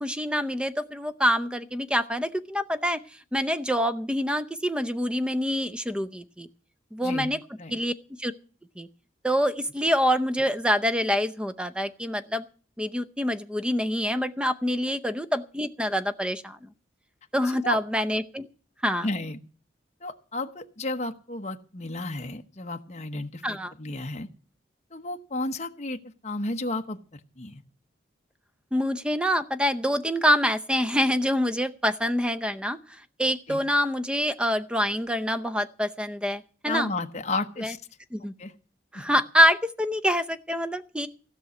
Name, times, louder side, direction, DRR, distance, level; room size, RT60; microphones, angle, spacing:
voice 1, 0.0-3.0 3.3-6.5 6.9-7.4 7.7-7.9 8.2-8.3 8.8-8.9 9.2-12.4 12.8-16.7 17.3-18.5 18.8-19.1 23.4-23.7 28.7-36.9 37.6-37.7 38.1-38.3 38.9-41.1, equal, 5° right, 10 dB, 0.6 m, -26 dB
voice 2, 7.0-7.3 7.6-7.7 17.6-17.8 19.0-19.4 20.0-24.3 24.9-27.0 27.4-27.6 33.5-33.6 36.6-37.8 38.4-38.5 38.9-39.0, left 2 dB, 35° left, 6 dB, 1.0 m, -32 dB
16.0 x 6.2 x 9.4 m, 0.40 s
head